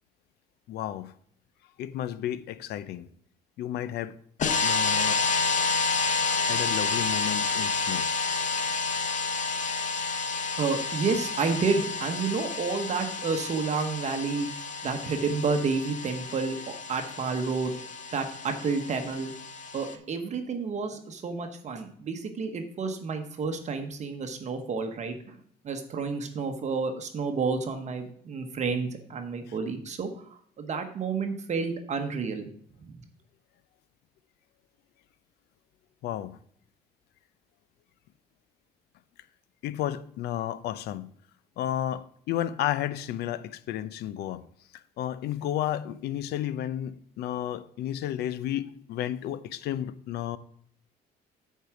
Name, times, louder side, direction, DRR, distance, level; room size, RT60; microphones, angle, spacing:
voice 1, 0.7-1.1 1.8-3.1 3.6-4.2 4.6-5.2 6.4-8.1 8.6-8.7 36.0-36.4 39.6-41.1 41.6-44.4 44.7-50.4, left 12 dB, 75° left, 0.5 m, -32 dB
sound 1, 4.4-19.9, left 4 dB, 45° left, 0.9 m, -30 dB
voice 2, 10.6-17.8 18.1-19.3 19.7-25.4 25.6-30.1 30.6-32.5 32.9-33.0, right 4 dB, 45° right, 1.0 m, -30 dB
8.2 x 4.7 x 5.9 m
cardioid pair, 110°, 17 cm